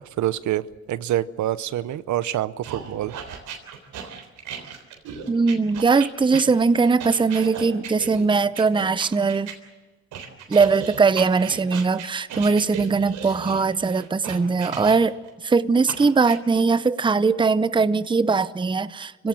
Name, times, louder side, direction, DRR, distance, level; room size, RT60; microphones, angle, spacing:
voice 1, 0.0-3.1, right 13 dB, 70° right, 0.8 m, -26 dB
sound 1, 2.6-9.6 10.1-15.3 15.9-16.4, right 7 dB, 85° right, 3.7 m, -36 dB
voice 2, 5.3-9.5 10.5-15.1 15.4-19.3, right 4 dB, 15° right, 0.7 m, -20 dB
25.5 x 17.0 x 7.6 m
cardioid pair, 90°, 30 cm